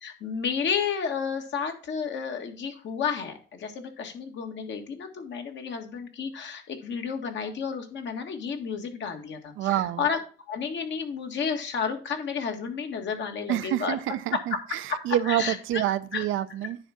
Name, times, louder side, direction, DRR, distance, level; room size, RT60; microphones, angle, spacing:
voice 1, 0.0-10.2 10.5-14.0 14.9-15.8 16.1-16.2, left 6 dB, 65° left, 4 dB, 1.7 m, -31 dB
voice 2, 9.6-10.1 13.5-16.8, right 12 dB, 85° right, 13 dB, 0.6 m, -27 dB
10.0 x 3.5 x 5.7 m, 0.40 s
cardioid pair, 90°, 20 cm